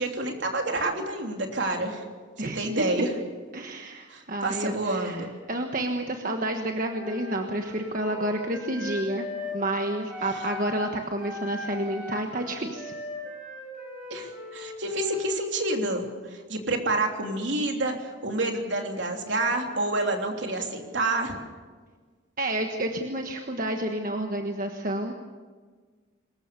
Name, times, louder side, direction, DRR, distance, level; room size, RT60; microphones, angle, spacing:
voice 1, 0.0-2.0 2.4-3.1 4.1-5.3 14.1-16.0 16.3-21.4, right 2 dB, 70° right, 2 dB, 3.3 m, -28 dB
voice 2, 2.4-2.9 3.5-12.9 22.4-25.1, right 1 dB, 45° right, 3 dB, 1.4 m, -30 dB
Wind instrument woodwind instrument, 6.9-10.9 11.2-15.4, left 2 dB, 5° right, 6.1 m, -39 dB
24.0 x 21.0 x 6.9 m, 1.5 s
head